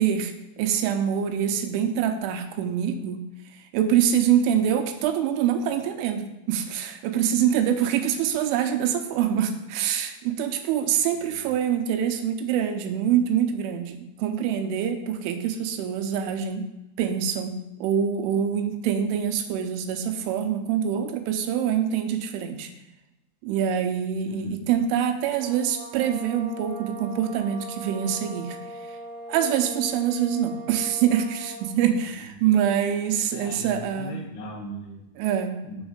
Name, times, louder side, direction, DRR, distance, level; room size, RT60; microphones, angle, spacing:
voice 1, 0.0-3.2 3.5-16.7 17.0-22.7 23.4-28.6 29.3-34.3 35.2-35.6, right 9 dB, 80° right, 6 dB, 3.1 m, -25 dB
voice 2, 24.3-24.6 32.2-32.3 33.3-35.0 35.6-35.8, right 1 dB, 80° left, -4 dB, 2.4 m, -39 dB
sound 1, 25.2-31.8, right 2 dB, 55° right, 0.7 m, -40 dB
7.1 x 4.0 x 6.5 m, 0.95 s
omnidirectional pair, 5.6 m